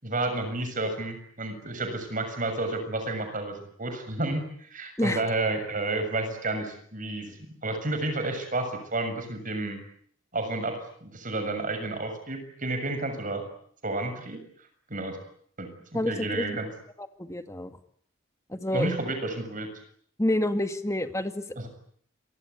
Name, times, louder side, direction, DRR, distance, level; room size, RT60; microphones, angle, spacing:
voice 1, 0.0-7.3 7.6-9.8 10.3-13.4 13.8-14.4 14.9-15.2 15.6-16.7 18.7-19.7 21.6-21.7, right 2 dB, 40° right, 7 dB, 6.9 m, -31 dB
voice 2, 15.9-16.6 17.0-17.8 18.5-18.9 20.2-21.7, left 1 dB, 15° left, 8 dB, 2.1 m, -29 dB
28.5 x 24.0 x 8.4 m, 0.64 s
head